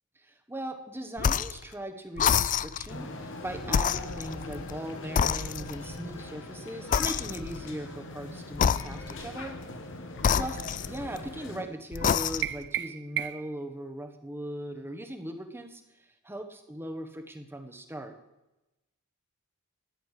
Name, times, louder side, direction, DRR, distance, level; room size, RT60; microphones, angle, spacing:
voice 1, 0.3-9.6 10.3-10.6 10.9-18.1, right 1 dB, 10° right, 5 dB, 1.1 m, -39 dB
sound 1, 1.2-1.6 2.2-2.9 3.7-4.8 5.2-5.9 6.9-7.7 8.5-9.3 10.2-11.3 11.9-12.6, left 7 dB, 35° left, 0.3 m, -28 dB
sound 2, 2.9-11.6, left 2 dB, 60° left, 1.4 m, -41 dB
sound 3, 12.4-13.6, right 12 dB, 55° right, 0.4 m, -33 dB
13.5 x 10.0 x 4.9 m, 0.99 s
head